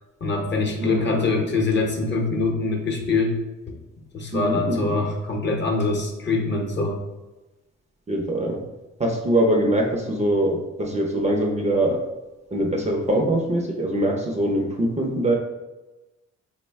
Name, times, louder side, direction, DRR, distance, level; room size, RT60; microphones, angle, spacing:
voice 1, 0.2-3.3 3.7-3.8 4.1-7.0, left 3 dB, 35° left, 1 dB, 0.7 m, -24 dB
voice 2, 0.8-1.3 4.3-5.0 8.1-8.6 9.0-12.0 12.5-15.3, right 1 dB, 25° right, 1 dB, 0.5 m, -23 dB
3.7 x 2.1 x 3.4 m, 1.1 s
cardioid pair, 90°, 30 cm